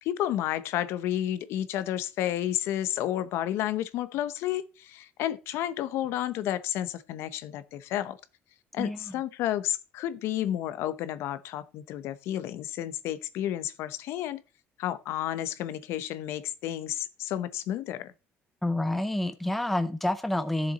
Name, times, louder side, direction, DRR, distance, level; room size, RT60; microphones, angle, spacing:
voice 1, 0.0-8.2 8.7-14.4 14.8-18.1, left 12 dB, 85° left, 0.9 m, -31 dB
voice 2, 8.8-9.1 18.6-20.7, left 1 dB, 5° left, 0.5 m, -28 dB
12.5 x 7.0 x 4.1 m
cardioid pair, 180°, 4 cm